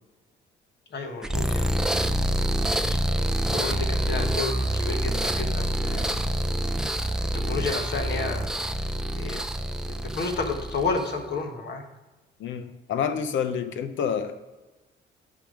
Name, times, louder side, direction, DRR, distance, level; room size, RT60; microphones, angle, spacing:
voice 1, 0.9-2.0 2.9-3.0 3.5-6.2 7.3-8.5 9.2-9.4 9.9-11.8, left 4 dB, 60° left, 4 dB, 1.3 m, -31 dB
sound 1, 1.2-11.2, right 1 dB, 5° right, 0.5 m, -27 dB
voice 2, 12.4-14.4, left 7 dB, 75° left, 10 dB, 0.7 m, -28 dB
10.0 x 3.9 x 4.9 m, 1.2 s
cardioid pair, 90°, 20 cm